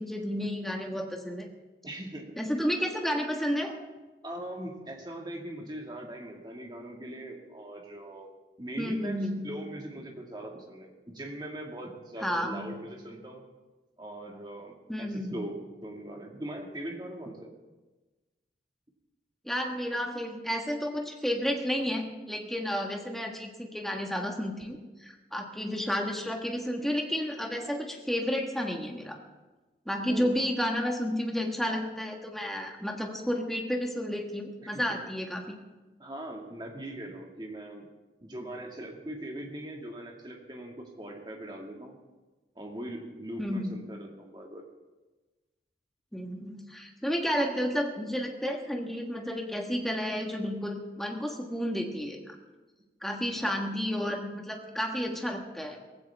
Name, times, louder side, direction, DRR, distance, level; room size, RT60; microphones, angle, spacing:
voice 1, 0.0-1.5 2.4-3.7 8.8-9.5 12.2-12.7 14.9-15.4 19.4-29.2 29.8-35.6 43.4-43.7 46.1-52.3 53.0-55.8, equal, ahead, 1 dB, 1.5 m, -31 dB
voice 2, 1.8-2.3 4.2-8.3 8.6-13.4 14.0-15.5 15.8-17.5 30.1-30.3 34.6-34.8 36.0-37.9 38.2-41.9 42.6-44.6 53.4-53.5, right 1 dB, 25° right, 1 dB, 2.0 m, -41 dB
18.5 x 15.5 x 3.5 m, 1.2 s
head